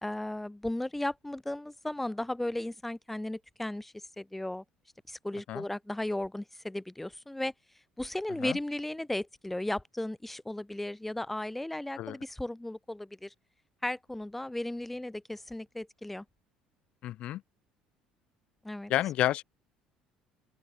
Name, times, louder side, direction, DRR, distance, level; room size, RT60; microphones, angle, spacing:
voice 1, 0.0-4.6 5.1-7.5 8.0-13.3 13.8-16.2 18.6-18.9, left 1 dB, 10° left, 1.9 m, -35 dB
voice 2, 17.0-17.4 18.9-19.4, left 14 dB, 60° left, 1.7 m, -30 dB
open air
hypercardioid pair, 70°, 2 cm